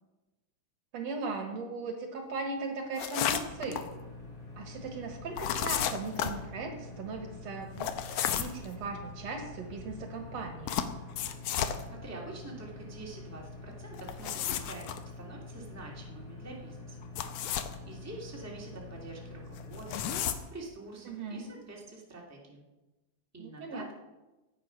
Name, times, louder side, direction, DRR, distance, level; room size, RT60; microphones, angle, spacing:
voice 1, 0.9-3.9 4.6-10.8 21.1-21.5 23.4-23.9, right 3 dB, 65° right, 5 dB, 2.3 m, -38 dB
sound 1, 2.9-3.8 5.4-6.4 7.8-8.6 10.7-11.8 13.9-15.0 17.0-17.7 19.6-20.4, left 9 dB, 70° left, 1.7 m, -32 dB
sound 2, 3.4-20.2, left 3 dB, 90° left, 4.3 m, -46 dB
voice 2, 11.9-14.9 15.2-17.1 17.9-22.6 23.3-23.9, right 3 dB, 5° right, -2 dB, 2.0 m, -46 dB
14.5 x 8.9 x 5.8 m, 1.1 s
omnidirectional pair, 3.4 m